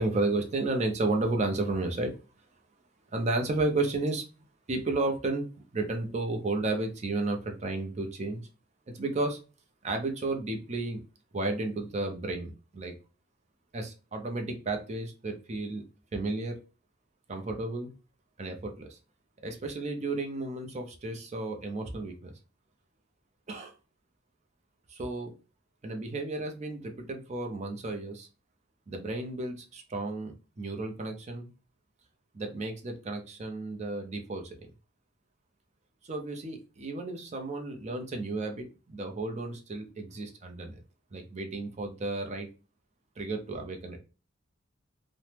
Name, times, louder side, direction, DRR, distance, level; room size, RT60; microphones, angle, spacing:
voice 1, 0.0-2.2 3.1-4.2 4.7-8.4 8.9-9.4 9.8-11.0 11.3-12.9 13.7-15.8 16.1-16.6 17.3-17.9 18.4-19.0 19.4-22.3 23.5-23.7 24.9-25.3 25.8-28.3 28.9-31.5 32.3-34.7 36.1-40.8 41.1-42.5 43.2-44.0, right 2 dB, 35° right, 4 dB, 0.5 m, -32 dB
2.9 x 2.1 x 3.2 m, 0.33 s
head